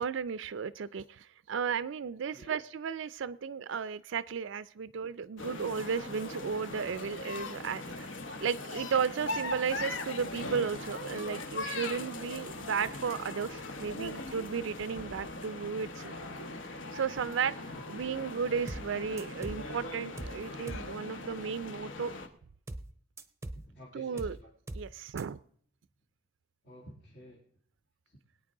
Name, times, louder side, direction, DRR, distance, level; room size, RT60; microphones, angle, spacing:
voice 1, 0.0-8.1 8.4-16.1 16.9-22.1 23.9-24.4 24.7-25.4, right 6 dB, 75° right, 0.4 m, -34 dB
sound 1, 5.4-22.3, left 2 dB, 75° left, 1.2 m, -40 dB
voice 2, 17.7-18.2 23.5-24.5 26.6-27.4 28.1-28.2, equal, 60° left, 2.4 m, -52 dB
sound 2, 18.7-18.9 19.2-19.7 20.2-20.4 20.7-20.9 22.7-22.9 23.2-23.7 24.2-24.4 24.7-24.9 25.2-25.3, right 1 dB, 15° right, 0.6 m, -41 dB
21.5 x 9.1 x 3.7 m
head